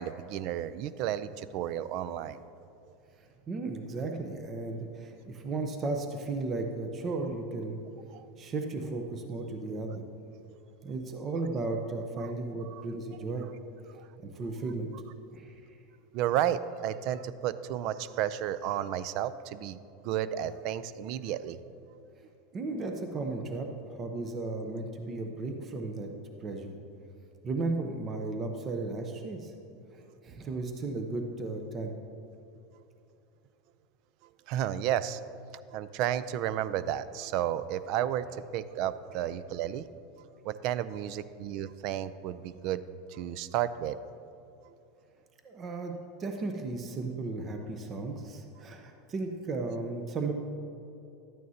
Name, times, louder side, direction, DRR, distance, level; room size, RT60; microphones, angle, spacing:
voice 1, 0.0-2.4 8.1-8.3 12.7-12.8 13.9-14.1 16.1-21.6 34.5-35.2 35.7-38.3 38.5-39.8 40.4-42.8 43.1-44.0, right 11 dB, 55° right, 15 dB, 0.4 m, -32 dB
voice 2, 3.5-7.8 8.4-10.0 10.8-13.5 14.2-14.9 15.3-15.5 22.5-26.1 26.4-26.8 27.4-29.5 29.9-31.9 45.4-50.3, right 3 dB, 30° right, 4 dB, 0.8 m, -35 dB
12.0 x 9.1 x 2.8 m, 2.7 s
supercardioid pair, 115°, 0 cm